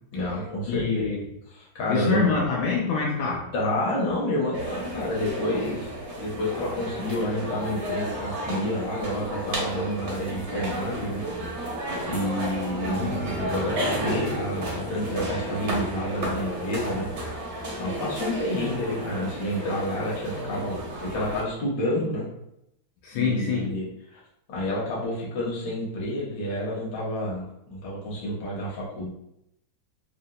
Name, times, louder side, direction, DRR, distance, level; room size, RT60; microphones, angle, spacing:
voice 1, 0.1-1.2 1.5-2.3 3.5-11.2 11.5-11.7 12.1-13.1 13.3-17.5 17.7-22.3 23.1-24.2 24.5-29.1, left 1 dB, 65° left, -5 dB, 1.6 m, -29 dB
voice 2, 0.7-1.2 1.9-3.5 23.0-23.7, left 5 dB, 85° left, -3 dB, 1.4 m, -26 dB
sound 1, 4.5-21.4, right 1 dB, 50° right, 0.8 m, -32 dB
sound 2, 12.9-16.5, equal, 85° right, 0.6 m, -35 dB
3.7 x 2.1 x 2.7 m, 0.80 s
omnidirectional pair, 2.1 m